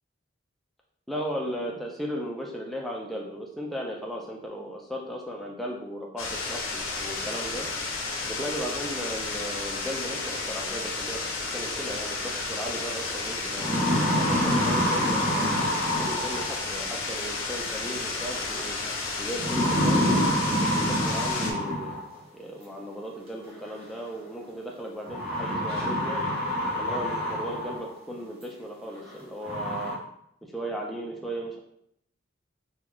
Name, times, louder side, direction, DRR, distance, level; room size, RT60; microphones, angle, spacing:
voice 1, 1.1-7.7 8.3-13.8 14.1-18.8 19.2-20.1 20.8-22.0 22.3-26.4 26.8-30.0 30.4-31.6, equal, ahead, -2 dB, 0.3 m, -36 dB
sound 1, 6.2-21.5, left 3 dB, 80° left, 0.6 m, -32 dB
sound 2, 13.4-16.8 18.2-18.6 19.4-22.2 23.4-23.5 25.1-27.9 28.4-28.5 29.1-29.2 29.4-29.9, equal, 25° right, 1.1 m, -27 dB
3.7 x 2.2 x 3.0 m, 0.73 s
head